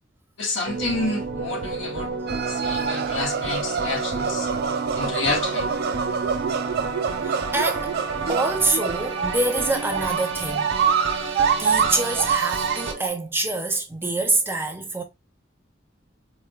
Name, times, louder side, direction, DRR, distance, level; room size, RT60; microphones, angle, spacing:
voice 1, 0.4-2.1 2.5-4.5 5.0-5.7, left 3 dB, 85° left, 1.1 m, -29 dB
sound 1, 0.7-12.9, right 4 dB, 80° right, 1.0 m, -30 dB
sound 2, 2.3-13.1, right 6 dB, 55° right, 0.3 m, -26 dB
voice 2, 7.2-8.0 8.3-10.7 11.3-15.0, right 2 dB, 10° right, 0.6 m, -26 dB
4.4 x 2.2 x 2.3 m
head